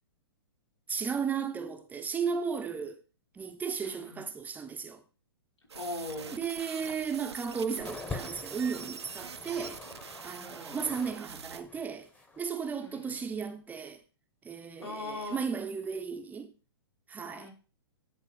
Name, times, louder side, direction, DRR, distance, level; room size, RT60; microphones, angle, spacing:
voice 1, 0.9-3.0 3.3-5.0 6.3-9.8 10.2-12.1 12.4-14.0 14.4-16.5 17.1-17.5, right 6 dB, 10° right, 0.8 m, -35 dB
voice 2, 3.8-4.2 5.7-6.3 10.4-10.9 12.8-13.2 14.8-15.4 17.4-17.5, left 2 dB, 90° left, 4.2 m, -40 dB
sound 1, 5.7-11.6, right 6 dB, 85° right, 0.9 m, -45 dB
sound 2, 7.8-11.2 11.5-12.4 13.1-13.2, left 3 dB, 10° left, 1.1 m, -44 dB
10.5 x 3.8 x 5.8 m
hypercardioid pair, 125°, 14 cm